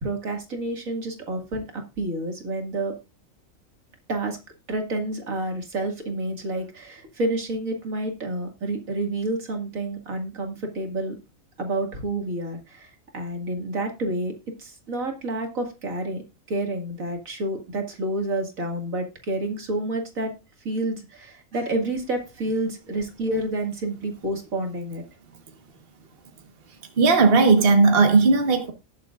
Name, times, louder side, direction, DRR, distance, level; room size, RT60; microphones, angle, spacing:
voice 1, 0.0-2.9 4.1-4.4 4.7-11.2 11.6-16.2 16.5-20.3 20.6-25.0, right 1 dB, 75° right, 2.6 m, -29 dB
voice 2, 27.0-28.7, right 4 dB, 45° right, 1.6 m, -16 dB
19.0 x 7.4 x 2.5 m
omnidirectional pair, 1.4 m